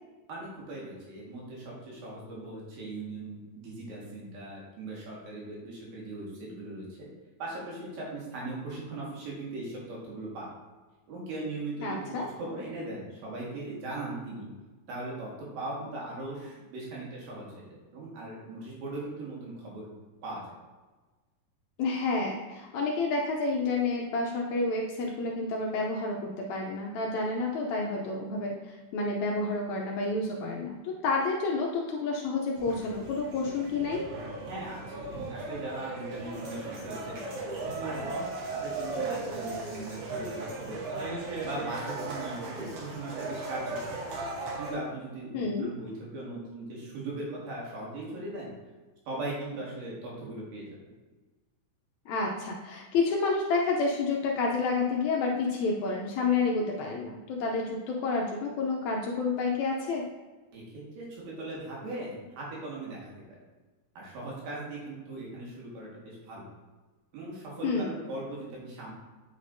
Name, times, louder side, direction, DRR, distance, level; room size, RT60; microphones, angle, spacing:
voice 1, 0.3-7.1 7.4-10.5 11.1-14.5 14.9-19.9 20.2-20.4 34.5-37.4 37.8-41.1 41.4-44.1 44.6-48.5 49.1-50.7 60.5-63.1 64.0-66.5 67.1-68.9, right 2 dB, 85° right, -5 dB, 3.5 m, -39 dB
voice 2, 11.8-12.3 21.8-34.1 45.3-45.7 52.1-60.0 67.6-67.9, left 3 dB, 85° left, -1 dB, 1.6 m, -29 dB
sound 1, 32.6-44.7, right 3 dB, 60° right, 1.7 m, -37 dB
8.3 x 5.0 x 2.6 m, 1.2 s
omnidirectional pair, 4.0 m